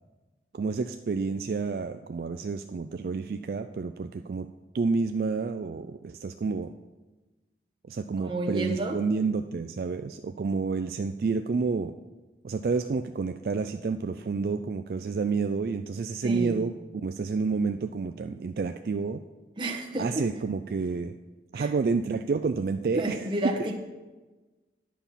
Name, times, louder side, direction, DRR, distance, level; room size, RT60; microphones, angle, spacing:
voice 1, 0.5-4.5 4.7-6.7 7.9-11.9 12.4-19.2 20.0-21.1 21.5-23.2, right 4 dB, 55° right, 8 dB, 0.3 m, -29 dB
voice 2, 8.2-9.0 16.2-16.6 19.6-20.3 21.5-21.7 22.9-23.8, right 1 dB, 25° right, 1 dB, 1.2 m, -31 dB
10.0 x 5.7 x 7.0 m, 1.2 s
head